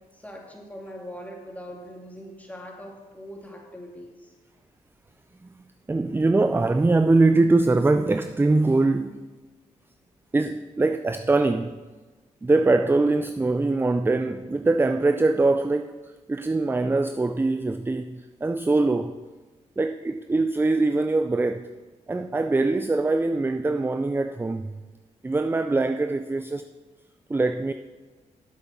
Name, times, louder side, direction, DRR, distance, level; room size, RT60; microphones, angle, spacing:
voice 1, 0.1-4.3, equal, 10° left, 2.4 m, -41 dB
voice 2, 5.9-9.4 10.3-11.8 12.4-19.2 19.8-21.7 22.1-24.8 25.2-26.6 27.3-27.7, right 3 dB, 15° right, 0.4 m, -23 dB
7.8 x 7.7 x 5.9 m
supercardioid pair, 60°, 15 cm